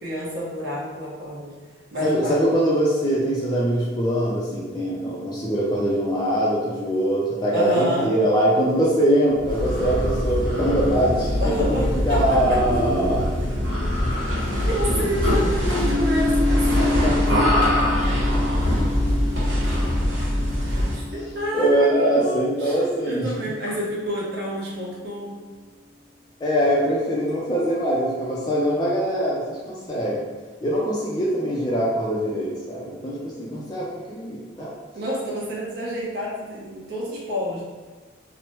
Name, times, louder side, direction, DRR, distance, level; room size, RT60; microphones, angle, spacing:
voice 1, 0.0-1.5 1.9-2.4 7.5-8.1 11.4-12.4 14.7-17.9 21.1-21.9 22.2-25.4 34.9-37.6, equal, 55° right, -5 dB, 0.8 m, -29 dB
voice 2, 2.0-13.3 16.5-17.1 18.3-18.4 21.1-21.2 21.5-23.3 26.4-30.3 30.6-34.7, right 1 dB, 20° left, -6 dB, 0.4 m, -23 dB
sound 1, 9.4-21.1, left 1 dB, 80° right, 1.0 m, -23 dB
sound 2, 15.8-23.6, left 3 dB, 85° left, 0.6 m, -29 dB
3.0 x 2.0 x 2.9 m, 1.4 s
head